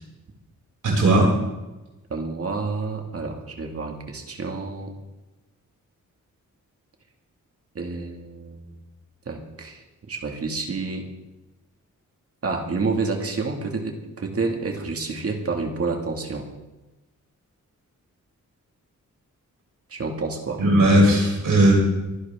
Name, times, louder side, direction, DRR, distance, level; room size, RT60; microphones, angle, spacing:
voice 1, 0.8-1.3 20.6-21.7, right 1 dB, 85° right, -3 dB, 6.7 m, -17 dB
voice 2, 2.1-4.9 7.7-8.8 9.3-9.8 10.1-11.1 12.4-16.5 19.9-20.6, right 4 dB, 50° right, 3 dB, 2.2 m, -29 dB
26.0 x 11.5 x 3.7 m, 1.1 s
wide cardioid pair, 170°, 31 cm